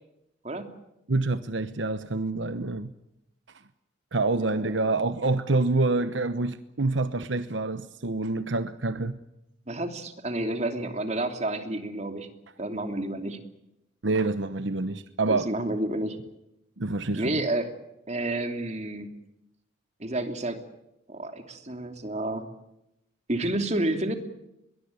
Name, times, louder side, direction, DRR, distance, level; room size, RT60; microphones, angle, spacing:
voice 1, 0.4-0.8 4.3-4.8 9.7-12.3 12.6-13.4 15.3-16.2 17.1-17.7 18.1-19.2 20.0-20.6 21.1-22.5 23.3-24.2, right 1 dB, 35° right, 2.9 m, -30 dB
voice 2, 1.1-2.9 4.1-9.2 14.0-15.5 16.8-17.4, right 3 dB, 75° right, 1.0 m, -27 dB
22.5 x 20.5 x 9.6 m
head